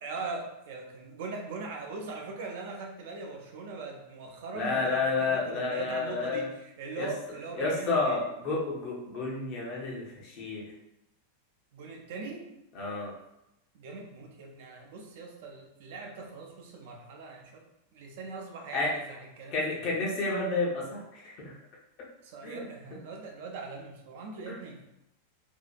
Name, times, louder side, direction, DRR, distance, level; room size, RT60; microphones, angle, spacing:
voice 1, 0.0-8.2 11.7-12.5 13.7-19.8 22.2-24.8, right 3 dB, 50° right, 1 dB, 0.5 m, -41 dB
voice 2, 4.5-6.5 7.0-7.1 7.6-10.7 12.7-13.1 18.7-18.9 19.5-21.5 22.4-22.6 22.9-23.0 24.5-24.6, left 3 dB, 40° left, -3 dB, 0.8 m, -30 dB
2.7 x 2.4 x 2.2 m, 0.86 s
figure-of-eight pair, 90°, 0 cm